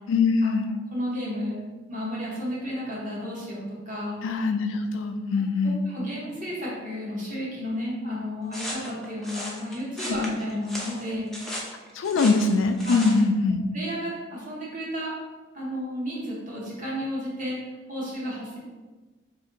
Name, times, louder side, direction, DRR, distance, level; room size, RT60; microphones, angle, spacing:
voice 1, 0.1-0.7 4.2-5.8 10.1-10.2 11.9-13.6, left 4 dB, 75° left, 7 dB, 0.3 m, -23 dB
voice 2, 0.9-1.6 1.9-4.2 5.6-11.7 12.8-13.1 13.7-15.1 15.5-17.6 17.9-18.6, equal, 40° right, -5 dB, 1.0 m, -32 dB
sound 1, 8.5-13.2, equal, ahead, 0.4 m, -36 dB
2.6 x 2.5 x 3.8 m, 1.2 s
head